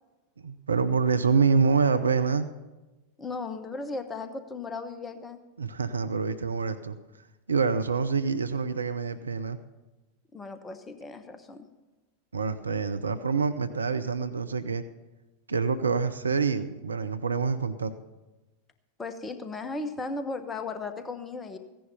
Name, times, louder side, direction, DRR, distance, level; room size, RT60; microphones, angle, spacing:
voice 1, 0.4-2.5 5.6-7.0 7.5-9.6 12.3-14.8 15.5-17.9, right 5 dB, 75° right, 11 dB, 0.6 m, -26 dB
voice 2, 3.2-5.4 10.3-11.7 19.0-21.6, left 3 dB, 15° left, 9 dB, 1.0 m, -36 dB
16.0 x 10.5 x 5.5 m, 1.1 s
figure-of-eight pair, 90°, 0 cm